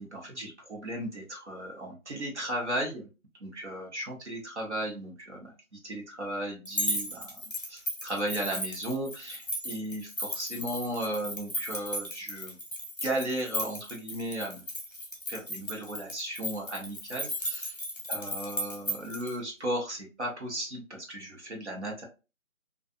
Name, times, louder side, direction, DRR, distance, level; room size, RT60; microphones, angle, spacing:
voice 1, 0.0-3.1 3.4-7.4 7.7-12.6 13.0-14.6 15.3-17.8 18.1-22.0, right 1 dB, 55° right, -1 dB, 1.1 m, -35 dB
sound 1, 6.7-19.3, equal, 40° left, 0.7 m, -36 dB
2.5 x 2.4 x 2.4 m, 0.30 s
figure-of-eight pair, 175°, 41 cm